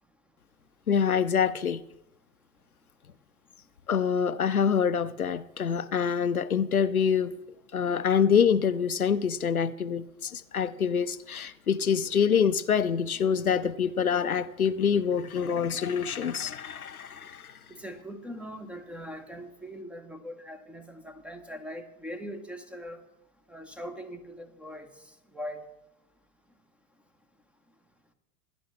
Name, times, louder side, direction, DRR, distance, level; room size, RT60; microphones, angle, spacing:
voice 1, 0.9-1.8 3.9-7.3 7.7-17.5, left 7 dB, 90° left, 0.5 m, -26 dB
voice 2, 17.7-23.0 23.5-25.7, equal, 5° right, 0.8 m, -41 dB
17.5 x 10.5 x 3.1 m
figure-of-eight pair, 90°, 42 cm